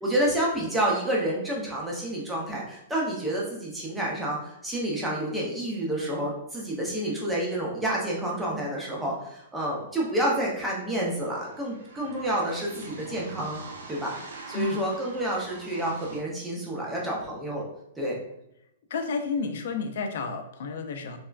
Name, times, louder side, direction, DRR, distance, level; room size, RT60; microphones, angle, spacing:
voice 1, 0.0-13.6 13.9-17.7 18.0-18.2, right 1 dB, 5° right, -4 dB, 0.6 m, -29 dB
sound 1, 10.4-16.2, right 3 dB, 75° right, 0.6 m, -44 dB
voice 2, 14.5-14.9 18.9-21.2, left 4 dB, 60° left, 6 dB, 0.4 m, -31 dB
3.3 x 2.1 x 2.3 m, 0.80 s
hypercardioid pair, 165°, 0 cm